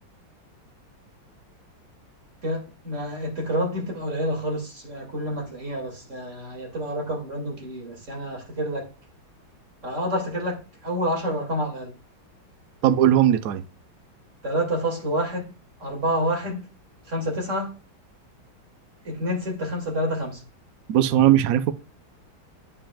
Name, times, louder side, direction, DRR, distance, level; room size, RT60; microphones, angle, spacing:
voice 1, 2.4-8.9 9.8-12.0 14.4-15.5 15.8-16.7 17.1-17.7 19.0-20.4, equal, 35° right, 2.4 m, -28 dB
voice 2, 12.8-13.6 20.9-21.7, right 11 dB, 80° right, 0.7 m, -18 dB
10.0 x 5.5 x 2.3 m
omnidirectional pair, 2.3 m